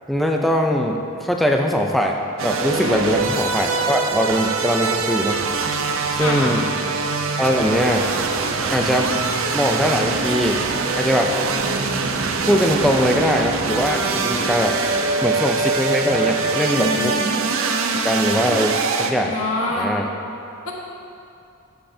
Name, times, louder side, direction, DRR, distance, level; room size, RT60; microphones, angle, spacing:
voice 1, 0.1-2.2 2.4-5.4 6.1-6.6 7.4-8.0 8.7-9.1 9.5-10.6 10.9-11.3 12.5-14.7 15.2-17.2 18.0-19.3 19.8-20.1, equal, ahead, 1 dB, 0.4 m, -21 dB
sound 1, 2.4-19.1, right 4 dB, 70° right, 0.6 m, -23 dB
voice 2, 2.8-3.2 6.2-6.5 16.7-17.3 19.2-19.9 20.6-20.7, left 2 dB, 85° left, -2 dB, 1.4 m, -26 dB
sound 2, 6.1-14.1, equal, 20° right, 1.9 m, -35 dB
13.0 x 6.7 x 2.7 m, 2.6 s
head